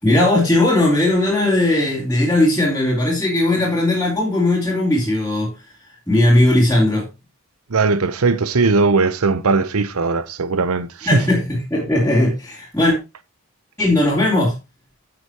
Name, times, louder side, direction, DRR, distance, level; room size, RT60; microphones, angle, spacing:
voice 1, 0.0-5.5 6.1-7.1 11.1-13.0 13.8-14.5, left 1 dB, 10° left, 3.0 m, -17 dB
voice 2, 7.7-11.2, right 4 dB, 80° right, 0.8 m, -19 dB
10.0 x 8.0 x 2.9 m
head